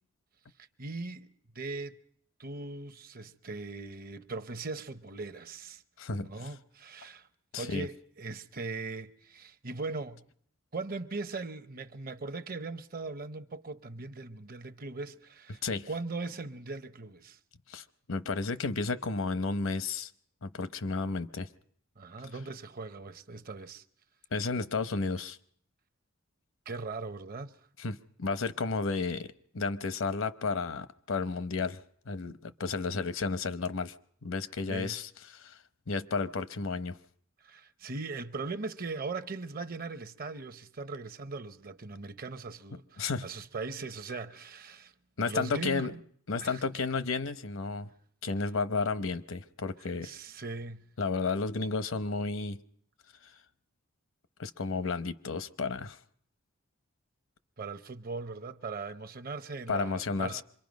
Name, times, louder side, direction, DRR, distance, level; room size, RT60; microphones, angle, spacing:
voice 1, 0.8-2.0 2.4-5.8 6.2-7.3 7.6-10.2 10.7-17.4 22.0-23.8 26.7-27.5 34.7-35.0 37.4-44.9 45.2-46.0 46.4-46.6 50.0-50.9 57.6-60.4, right 3 dB, 45° right, 0.8 m, -39 dB
voice 2, 6.0-6.3 7.5-7.9 15.6-15.9 17.7-20.1 20.4-21.5 24.3-25.4 27.8-31.8 32.1-33.9 34.2-35.5 35.9-37.0 43.0-43.3 45.2-45.9 46.3-47.9 48.2-50.1 51.0-52.6 54.4-56.0 59.7-60.4, left 4 dB, 75° left, 0.8 m, -32 dB
26.0 x 23.0 x 5.2 m
head